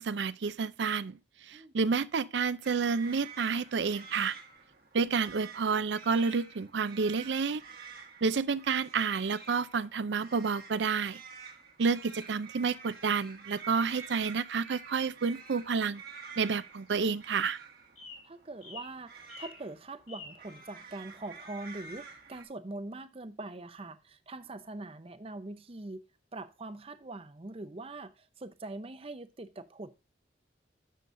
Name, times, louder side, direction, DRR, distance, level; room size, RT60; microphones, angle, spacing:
voice 1, 0.0-4.3 4.9-7.6 8.2-11.2 11.8-16.0 16.4-17.6, right 5 dB, 75° right, 0.5 m, -30 dB
sound 1, 2.6-22.4, right 5 dB, 55° right, 1.3 m, -50 dB
sound 2, 16.7-17.5 18.0-18.3 18.6-19.0 19.3-19.6 20.1-20.4, left 4 dB, 40° left, 1.8 m, -48 dB
voice 2, 18.2-26.1 26.3-29.9, right 2 dB, 30° right, 0.6 m, -43 dB
10.0 x 7.0 x 2.6 m
head